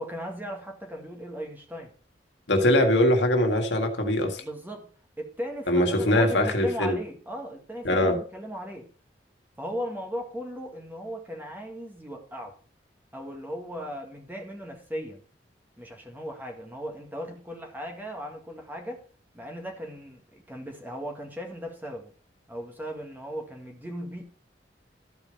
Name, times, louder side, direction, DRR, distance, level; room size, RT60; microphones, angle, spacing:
voice 1, 0.0-1.9 4.4-4.9 5.2-8.9 9.6-12.6 13.1-15.2 15.8-19.0 19.3-22.1 22.5-24.2, equal, 10° right, 1.9 m, -37 dB
voice 2, 2.5-4.4 5.7-7.0 7.9-8.2, left 1 dB, 70° left, 1.9 m, -22 dB
13.5 x 5.2 x 4.9 m
head